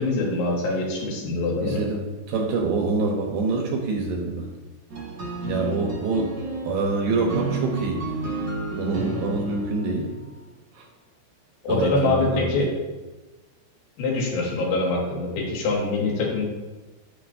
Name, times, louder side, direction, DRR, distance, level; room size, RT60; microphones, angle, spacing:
voice 1, 0.0-1.8 11.6-12.7 14.0-16.4, left 3 dB, 80° left, -2 dB, 4.3 m, -24 dB
voice 2, 1.6-4.5 5.5-6.3 6.6-8.2 8.8-10.1 10.7-10.9 11.7-12.7, right 3 dB, 75° right, 1 dB, 2.6 m, -26 dB
sound 1, 4.9-10.3, right 2 dB, 45° right, 1.3 m, -31 dB
10.0 x 9.8 x 2.7 m, 1.2 s
omnidirectional pair, 5.4 m